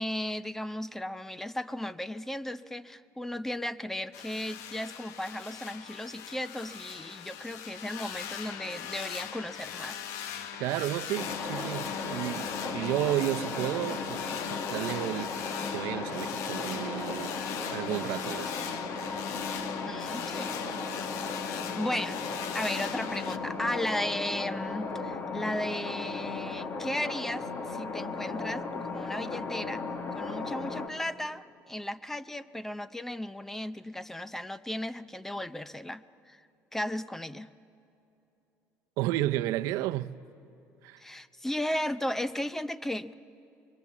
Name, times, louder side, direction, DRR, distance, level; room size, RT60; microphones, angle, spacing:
voice 1, 0.0-10.0 19.9-20.5 21.8-29.8 30.1-36.4 36.7-37.5 41.0-43.1, left 1 dB, 5° left, 0.5 m, -35 dB
sound 1, 4.1-23.4, left 9 dB, 75° left, 1.1 m, -40 dB
voice 2, 10.6-15.3 15.7-17.4 17.7-18.8 39.0-40.2 40.8-41.0, right 15 dB, 80° right, 0.6 m, -32 dB
sound 2, 11.1-30.9, left 4 dB, 35° left, 1.7 m, -36 dB
26.0 x 22.5 x 7.4 m
cardioid pair, 135°, 5 cm